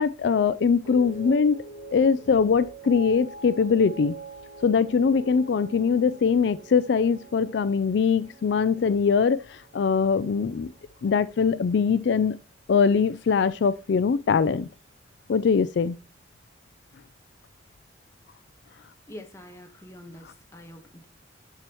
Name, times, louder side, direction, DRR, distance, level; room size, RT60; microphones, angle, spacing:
voice 1, 0.0-1.6 1.9-4.2 4.6-10.7 11.0-12.4 12.7-14.7 15.3-16.0, left 5 dB, 65° left, 0.4 m, -22 dB
sound 1, 0.8-11.2 11.5-12.1, right 3 dB, 20° right, 2.8 m, -44 dB
voice 2, 19.1-21.1, left 1 dB, 15° left, 1.2 m, -45 dB
9.9 x 6.9 x 2.9 m
head